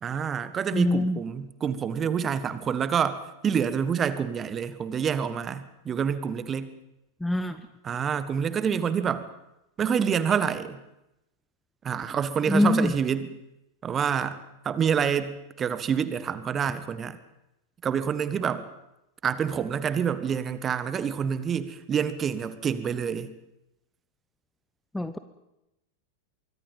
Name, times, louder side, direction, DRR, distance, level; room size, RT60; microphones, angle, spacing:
voice 1, 0.0-6.7 7.8-9.3 9.8-10.8 11.8-13.3 13.8-14.4 14.6-17.2 17.8-18.6 19.2-23.3, right 7 dB, 25° right, 13 dB, 1.5 m, -27 dB
voice 2, 0.7-1.2 7.2-7.6 12.5-12.9 24.9-25.2, left 1 dB, 5° left, 11 dB, 1.0 m, -23 dB
24.0 x 23.5 x 5.5 m, 0.88 s
figure-of-eight pair, 90°, 0 cm